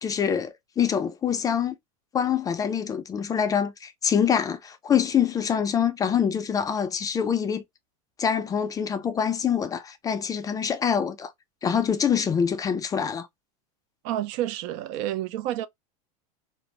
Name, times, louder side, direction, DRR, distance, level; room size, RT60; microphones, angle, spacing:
voice 1, 0.0-1.7 2.1-7.6 8.2-11.3 11.6-13.3, left 7 dB, 20° left, 0.4 m, -25 dB
voice 2, 14.0-15.7, right 13 dB, 60° right, 0.4 m, -29 dB
2.5 x 2.0 x 2.9 m
supercardioid pair, 125°, 19 cm